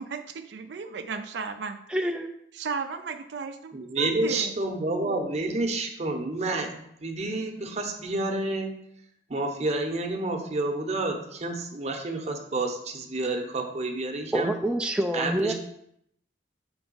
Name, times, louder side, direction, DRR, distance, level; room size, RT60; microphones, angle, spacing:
voice 1, 0.0-1.8 2.5-4.6, right 5 dB, 70° right, 8 dB, 0.4 m, -35 dB
voice 2, 1.9-2.3 14.3-15.5, right 1 dB, 5° right, 3 dB, 0.3 m, -26 dB
voice 3, 3.7-8.8 9.3-14.5 15.1-15.5, right 2 dB, 40° right, 4 dB, 0.8 m, -29 dB
6.0 x 3.4 x 5.5 m, 0.74 s
head